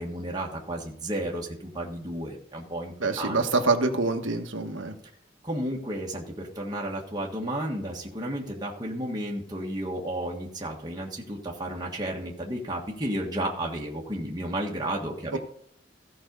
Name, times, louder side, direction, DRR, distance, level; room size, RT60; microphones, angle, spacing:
voice 1, 0.0-3.4 5.4-15.4, right 1 dB, 20° right, -2 dB, 1.6 m, -32 dB
voice 2, 3.0-4.9 15.3-15.4, right 3 dB, 80° right, 6 dB, 1.4 m, -25 dB
15.0 x 5.5 x 5.3 m, 0.68 s
head